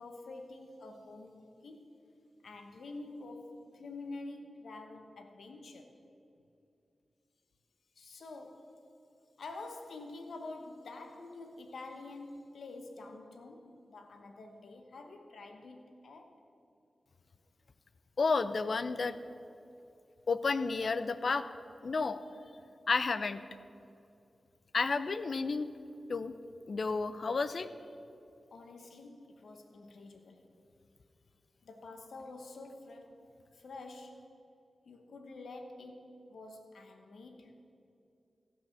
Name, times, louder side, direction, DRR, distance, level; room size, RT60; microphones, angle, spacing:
voice 1, 0.0-1.9 2.4-5.9 8.0-8.7 9.4-16.4 28.5-30.5 31.6-34.3 34.8-37.5, left 2 dB, 85° left, 5 dB, 1.1 m, -48 dB
voice 2, 18.2-19.1 20.3-21.5 21.8-22.2 22.9-23.4 24.7-25.7 26.1-26.3 26.7-27.7, left 4 dB, 65° left, 13 dB, 0.5 m, -31 dB
15.5 x 6.3 x 7.1 m, 2.6 s
cardioid pair, 60°, 0 cm